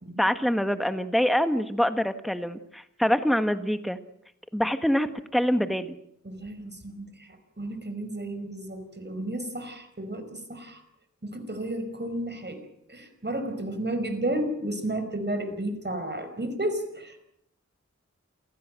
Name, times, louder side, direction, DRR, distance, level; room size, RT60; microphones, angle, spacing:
voice 1, 0.2-4.0 4.5-5.9, equal, ahead, 10 dB, 1.5 m, -25 dB
voice 2, 6.2-7.1 7.6-10.8 11.2-12.6 12.9-17.2, right 1 dB, 35° right, 7 dB, 5.3 m, -32 dB
28.0 x 16.5 x 7.7 m, 0.75 s
wide cardioid pair, 55°, 29 cm